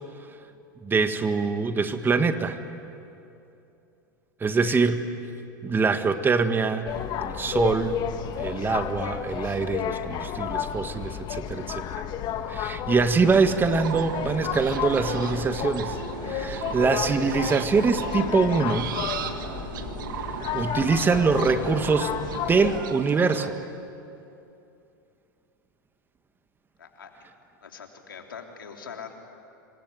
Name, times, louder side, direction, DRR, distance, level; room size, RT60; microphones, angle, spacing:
voice 1, 0.8-2.6 4.4-5.0 5.6-8.0 8.4-11.8 12.5-16.0 16.2-18.9 20.5-23.6, right 4 dB, 20° right, 9 dB, 1.7 m, -24 dB
sound 1, 6.8-22.8, left 9 dB, 40° left, 2.0 m, -32 dB
sound 2, 13.2-23.5, right 9 dB, 75° right, 1.9 m, -36 dB
voice 2, 26.8-27.1 27.6-29.1, left 6 dB, 90° left, 3 dB, 3.5 m, -42 dB
27.0 x 23.5 x 9.4 m, 2.8 s
hypercardioid pair, 105°, 11 cm